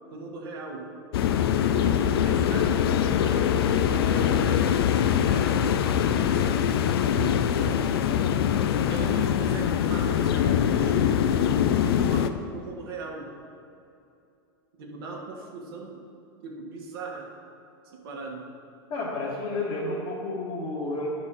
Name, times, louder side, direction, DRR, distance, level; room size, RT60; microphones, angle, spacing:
voice 1, 0.1-0.9 1.7-4.9 5.2-7.9 8.9-13.4 14.8-16.0 16.4-17.3 17.8-18.5, right 3 dB, 75° right, -1 dB, 1.3 m, -39 dB
sound 1, 1.1-12.3, left 9 dB, 75° left, 0.4 m, -23 dB
voice 2, 18.9-21.1, left 2 dB, 45° left, -8 dB, 1.7 m, -31 dB
9.5 x 4.3 x 5.6 m, 2.6 s
hypercardioid pair, 105°, 13 cm